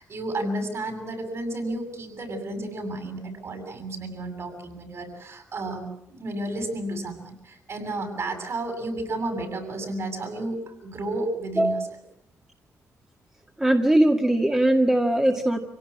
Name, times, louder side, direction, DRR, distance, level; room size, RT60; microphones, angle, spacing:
voice 1, 0.0-11.8, right 2 dB, 55° right, 5 dB, 7.9 m, -32 dB
voice 2, 13.6-15.6, right 1 dB, 10° right, 2 dB, 2.0 m, -20 dB
26.5 x 17.5 x 8.8 m, 0.79 s
cardioid pair, 85°, 6 cm